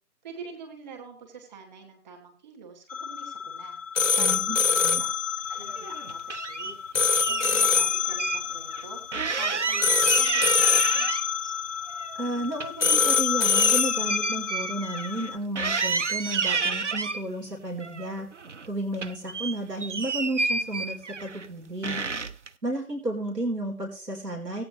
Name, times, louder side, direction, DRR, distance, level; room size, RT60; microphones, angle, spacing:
voice 1, 0.2-3.8 4.2-5.1 5.5-6.8 7.2-9.0 9.4-11.1, right 4 dB, 25° right, 3 dB, 3.0 m, -45 dB
sound 1, 2.9-15.4, left 6 dB, 55° left, 0.5 m, -25 dB
voice 2, 4.2-4.6 4.8-5.0 12.2-18.3 18.7-22.0 22.6-24.6, right 1 dB, 75° right, 1 dB, 3.8 m, -32 dB
sound 2, 5.7-6.7 7.2-8.4 8.7-8.8 9.1-11.5 11.9-15.3 15.6-17.2 17.8-18.7 18.9-21.5 21.8-22.5, right 4 dB, 50° right, 0.6 m, -30 dB
18.0 x 8.9 x 3.1 m, 0.39 s
figure-of-eight pair, 150°, 49 cm